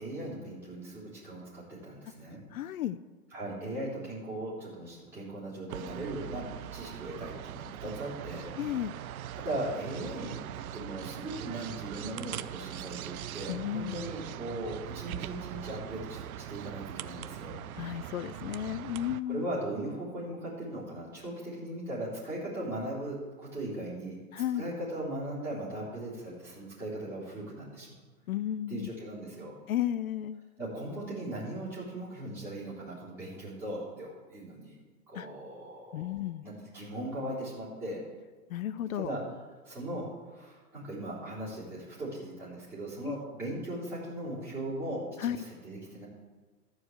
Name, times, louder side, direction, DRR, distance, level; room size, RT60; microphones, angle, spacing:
voice 1, 0.0-2.4 3.3-8.5 8.9-9.0 9.3-17.6 18.7-18.8 19.2-24.2 24.5-28.0 28.7-29.5 30.6-34.7 35.1-36.1 36.4-38.0 38.9-39.2 39.6-46.1, right 1 dB, 5° right, -11 dB, 3.7 m, -38 dB
voice 2, 2.5-3.0 8.6-8.9 13.5-14.0 17.8-19.5 24.3-24.6 28.3-28.9 29.7-30.4 35.2-35.3 35.9-36.4 38.5-39.1 43.0-43.2 45.2-45.4, left 12 dB, 65° left, 15 dB, 0.5 m, -33 dB
sound 1, 5.7-19.2, right 11 dB, 65° right, 0.6 m, -41 dB
13.0 x 4.8 x 7.8 m, 1.3 s
hypercardioid pair, 160°, 47 cm